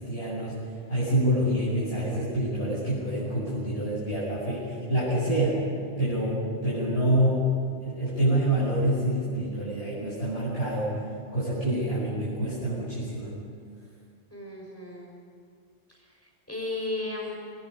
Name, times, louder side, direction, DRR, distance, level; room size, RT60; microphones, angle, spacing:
voice 1, 0.0-5.6 6.0-10.9 11.3-13.3, right 1 dB, 55° left, -10 dB, 8.2 m, -27 dB
voice 2, 14.3-15.1 15.9-17.4, left 2 dB, 10° left, -1 dB, 6.4 m, -35 dB
30.0 x 21.0 x 5.6 m, 2.3 s
omnidirectional pair, 1.2 m